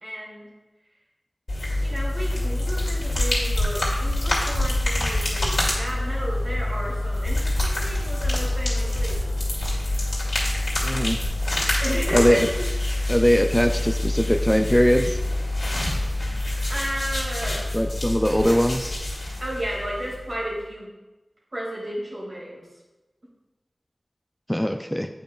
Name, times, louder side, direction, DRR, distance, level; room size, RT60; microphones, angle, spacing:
voice 1, 0.0-0.5 1.8-9.3 9.8-9.9 11.8-12.4 16.7-17.7 19.4-20.9 21.5-22.7, equal, 55° right, -5 dB, 2.2 m, -33 dB
sound 1, 1.5-20.4, left 1 dB, 75° left, 2.2 m, -26 dB
voice 2, 10.8-11.2 12.1-12.5 13.1-15.2 17.7-19.0 24.5-25.1, equal, 10° left, 5 dB, 0.3 m, -21 dB
9.0 x 5.1 x 2.3 m, 1.1 s
wide cardioid pair, 70°, 0 cm